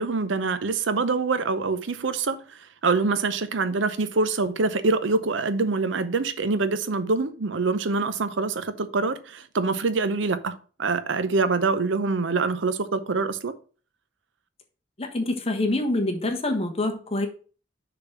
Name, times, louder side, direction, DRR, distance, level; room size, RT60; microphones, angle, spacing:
voice 1, 0.0-13.5, right 3 dB, 80° right, 0.7 m, -25 dB
voice 2, 15.0-17.3, left 2 dB, 35° left, 1.2 m, -26 dB
6.7 x 3.9 x 5.9 m
head